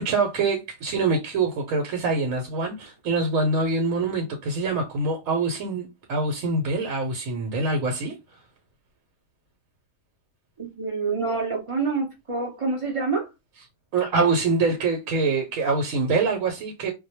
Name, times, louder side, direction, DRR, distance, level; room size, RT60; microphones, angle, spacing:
voice 1, 0.0-8.1 13.9-16.9, right 3 dB, 80° right, 1.0 m, -25 dB
voice 2, 10.6-13.3, right 4 dB, 45° right, 0.4 m, -27 dB
2.2 x 2.1 x 2.7 m
omnidirectional pair, 1.4 m